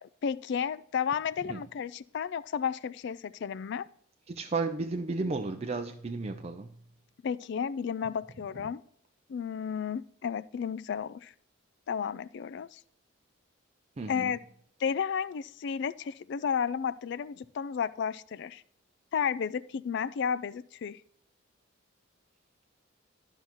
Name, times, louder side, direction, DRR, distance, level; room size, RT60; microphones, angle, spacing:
voice 1, 0.0-3.9 7.2-8.8 9.3-11.3 11.9-12.8 14.1-14.4 14.8-18.6 19.1-21.0, left 7 dB, 55° left, 18 dB, 0.3 m, -32 dB
voice 2, 4.3-6.7 14.0-14.3, right 3 dB, 30° right, 5 dB, 0.5 m, -33 dB
12.5 x 5.6 x 3.0 m, 0.65 s
head